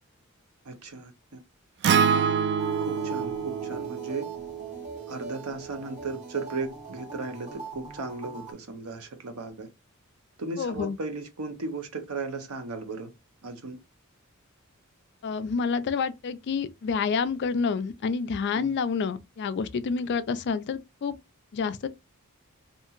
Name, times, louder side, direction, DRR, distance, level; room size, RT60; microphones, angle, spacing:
voice 1, 0.6-1.4 2.9-4.3 5.1-9.7 10.4-13.1 13.4-13.8 18.5-18.7, right 3 dB, 85° right, 0.8 m, -36 dB
Acoustic guitar, 1.8-6.1, right 7 dB, 50° right, 0.3 m, -27 dB
sound 1, 2.6-8.5, right 2 dB, 35° right, 1.0 m, -42 dB
voice 2, 10.6-11.0 15.2-21.2 21.5-21.9, left 5 dB, 50° left, 0.3 m, -28 dB
2.8 x 2.5 x 2.4 m
head